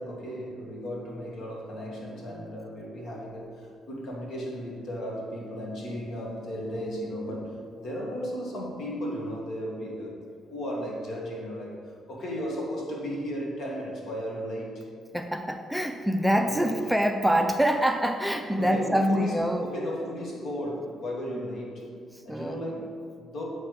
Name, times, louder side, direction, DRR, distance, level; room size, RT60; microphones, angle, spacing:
voice 1, 0.0-10.2 10.5-14.9 16.4-16.8 18.6-21.9 22.2-23.4, equal, 65° left, -2 dB, 1.5 m, -35 dB
voice 2, 15.1-19.7 21.3-21.4 22.1-22.6, equal, ahead, 5 dB, 0.3 m, -25 dB
8.2 x 3.3 x 4.6 m, 2.4 s
cardioid pair, 90°, 0 cm